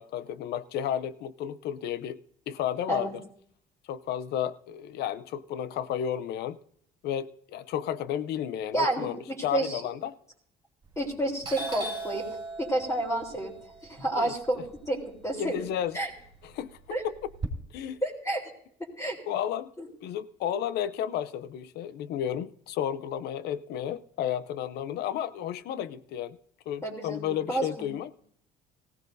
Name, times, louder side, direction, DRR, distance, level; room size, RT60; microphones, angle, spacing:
voice 1, 0.0-2.2 2.5-3.1 3.9-6.6 7.0-10.2 14.2-14.3 15.4-16.0 16.5-16.7 17.7-18.0 19.3-19.7 20.0-26.4 26.7-28.1, left 10 dB, 75° left, 0.6 m, -32 dB
voice 2, 8.7-9.9 11.0-12.2 12.6-13.5 13.8-15.6 15.9-16.1 16.9-17.0 18.0-18.5 18.8-19.2 19.8-19.9 26.8-27.9, right 1 dB, 20° left, 3.6 m, -30 dB
Doorbell, 10.9-11.1 11.4-15.6 15.9-17.5, right 3 dB, 25° right, 2.7 m, -38 dB
18.5 x 16.0 x 2.7 m
cardioid pair, 110°, 17 cm